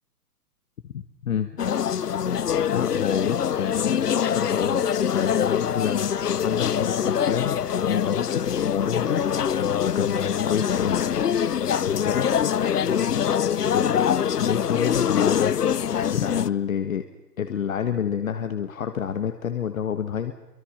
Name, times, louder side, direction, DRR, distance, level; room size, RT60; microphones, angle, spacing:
voice 1, 0.9-1.5 2.7-4.8 5.1-9.2 9.9-10.2 10.5-11.0 11.8-12.3 12.9-13.0 13.7-14.1 14.4-15.6 15.8-17.1 17.4-20.3, left 8 dB, 55° left, 8 dB, 1.7 m, -28 dB
sound 1, 1.6-16.5, left 8 dB, 75° left, 0.8 m, -24 dB
26.0 x 24.5 x 5.8 m, 1.0 s
figure-of-eight pair, 120°, 47 cm